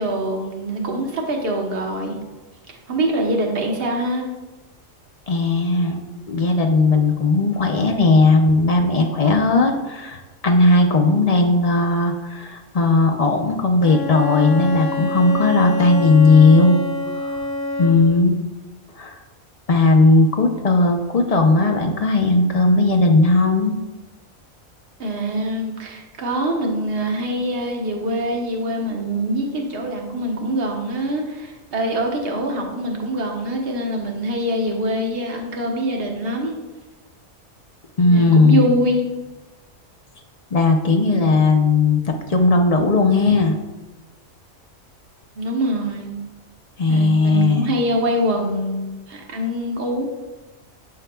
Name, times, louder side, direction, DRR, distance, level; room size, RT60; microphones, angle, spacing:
voice 1, 0.0-2.2 2.9-4.3 25.0-36.5 38.1-39.0 45.4-46.2 46.9-50.1, right 1 dB, 50° right, 1 dB, 1.2 m, -24 dB
voice 2, 5.3-6.0 6.3-16.8 17.1-17.4 17.8-18.4 19.0-19.2 19.7-23.8 38.0-38.7 40.5-42.0 42.3-43.6 46.8-47.8, left 3 dB, 50° left, 3 dB, 0.4 m, -16 dB
Bowed string instrument, 13.8-18.2, left 2 dB, 20° left, 0.9 m, -27 dB
12.0 x 4.7 x 2.3 m, 1.1 s
omnidirectional pair, 1.4 m